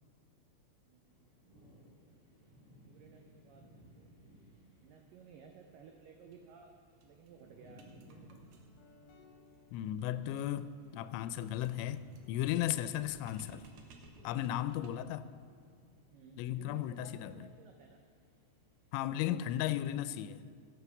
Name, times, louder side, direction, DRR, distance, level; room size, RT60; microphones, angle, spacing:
voice 1, 0.8-1.6 2.8-4.2 4.8-6.7 7.0-8.4 16.1-18.0, right 6 dB, 90° right, 3 dB, 1.9 m, -57 dB
sound 1, 1.0-19.8, equal, 5° left, 3.7 m, -63 dB
sound 2, 6.2-6.4 6.7-6.8 7.0-15.2, right 4 dB, 65° right, 2.9 m, -61 dB
Guitar, 8.1-17.6, left 5 dB, 65° left, 3.3 m, -63 dB
voice 2, 9.7-13.7 14.2-15.3 16.4-17.4 18.9-20.4, left 12 dB, 85° left, 13 dB, 2.9 m, -35 dB
16.5 x 7.3 x 7.1 m, 2.2 s
omnidirectional pair, 5.1 m